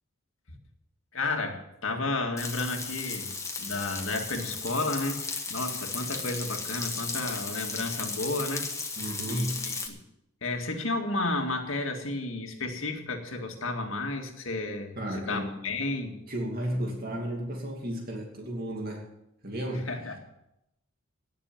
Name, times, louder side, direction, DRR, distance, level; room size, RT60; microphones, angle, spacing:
voice 1, 1.1-3.3 3.6-5.2 5.5-8.9 9.3-10.0 10.4-16.2 19.9-20.2, left 2 dB, 75° left, 3 dB, 2.1 m, -32 dB
Frying (food), 2.4-9.9, left 4 dB, 15° left, 1.5 m, -35 dB
voice 2, 9.0-9.6 15.0-15.6 16.3-19.0 19.4-19.9, equal, 45° right, 0 dB, 2.6 m, -33 dB
18.5 x 6.8 x 7.3 m, 0.85 s
head